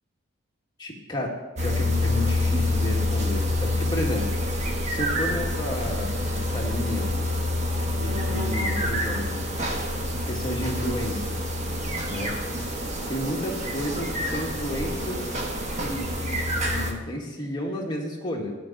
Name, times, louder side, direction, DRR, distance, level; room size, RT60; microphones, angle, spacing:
voice 1, 0.8-4.3 4.6-7.1 7.9-9.5 10.2-11.4 12.1-12.3 13.1-15.4 15.7-18.5, left 1 dB, 25° left, -1 dB, 1.8 m, -32 dB
sound 1, 1.6-16.9, left 1 dB, 40° right, 1.3 m, -27 dB
13.0 x 5.1 x 7.3 m, 1.2 s
head